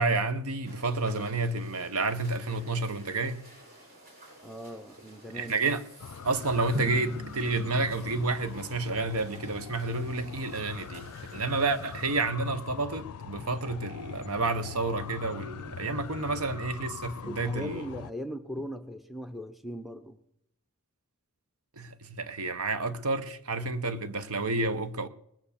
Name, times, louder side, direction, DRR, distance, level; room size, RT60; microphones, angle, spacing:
voice 1, 0.0-3.4 5.3-5.8 6.2-17.8 21.8-25.1, right 3 dB, 75° right, 1.0 m, -30 dB
sound 1, 0.6-12.3, right 1 dB, 45° right, 5.6 m, -53 dB
voice 2, 4.4-5.5 16.3-16.4 17.3-20.2, equal, ahead, 0.7 m, -39 dB
sound 2, 6.0-18.1, left 6 dB, 85° left, 0.4 m, -42 dB
Drum, 6.7-9.5, right 1 dB, 20° right, 1.3 m, -40 dB
19.5 x 6.9 x 7.1 m
head